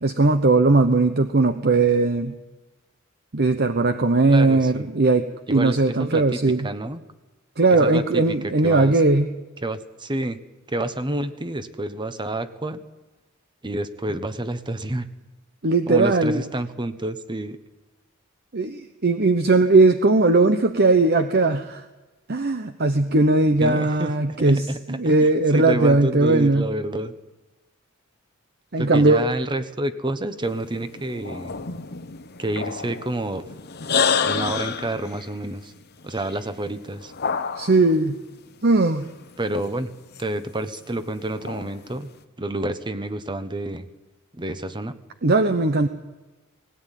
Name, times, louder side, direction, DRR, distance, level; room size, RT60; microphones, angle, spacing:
voice 1, 0.0-2.3 3.3-6.7 7.6-9.3 15.6-16.4 18.5-21.8 22.3-26.7 28.7-29.2 37.6-38.2 38.6-39.1 45.2-45.9, right 3 dB, 50° right, 8 dB, 1.0 m, -19 dB
voice 2, 4.3-4.9 5.5-6.2 6.6-7.0 7.8-8.4 8.6-8.9 9.6-10.4 10.7-12.8 13.6-15.1 15.9-17.6 23.6-27.1 28.8-31.5 32.4-33.5 34.2-35.7 36.0-37.1 39.4-39.9 40.2-42.1 42.4-43.9 44.4-45.0, right 1 dB, 20° right, 10 dB, 1.1 m, -29 dB
sound 1, 30.4-38.0 38.8-40.3 40.6-41.9, left 6 dB, 50° left, 1.0 m, -29 dB
19.0 x 17.0 x 9.2 m, 1.1 s
head